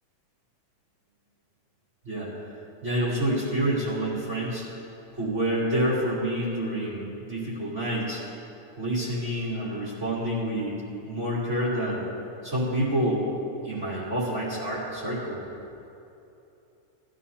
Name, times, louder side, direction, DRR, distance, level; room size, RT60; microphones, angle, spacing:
voice 1, 2.8-4.6 5.2-8.2 8.8-10.8 11.0-12.0 12.4-13.3 13.6-15.4, right 1 dB, 20° right, -8 dB, 3.7 m, -28 dB
21.0 x 14.0 x 2.9 m, 2.8 s
omnidirectional pair, 3.8 m